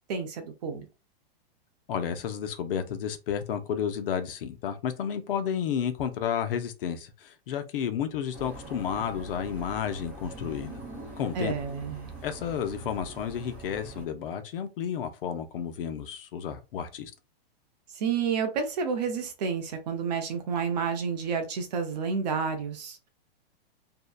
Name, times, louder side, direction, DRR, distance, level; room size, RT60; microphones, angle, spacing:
voice 1, 0.1-0.9 11.3-12.1 17.9-23.1, right 6 dB, 45° right, 0.6 m, -30 dB
voice 2, 1.9-10.8 11.2-11.5 12.2-17.1, left 8 dB, 60° left, 0.5 m, -32 dB
sound 1, 8.3-14.1, right 2 dB, 5° right, 0.7 m, -43 dB
2.7 x 2.1 x 2.3 m
hypercardioid pair, 160°, 31 cm